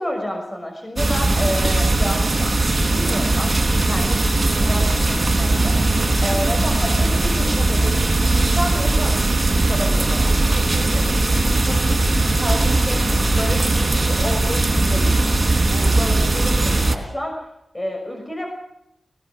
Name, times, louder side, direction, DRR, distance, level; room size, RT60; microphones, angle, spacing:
voice 1, 0.0-13.1 13.4-15.1 15.6-17.5 17.7-18.5, left 1 dB, 20° left, 2 dB, 5.8 m, -30 dB
sound 1, 1.0-17.0, right 2 dB, 35° right, 3.9 m, -19 dB
20.5 x 19.5 x 7.0 m, 0.81 s
cardioid pair, 55°, 0 cm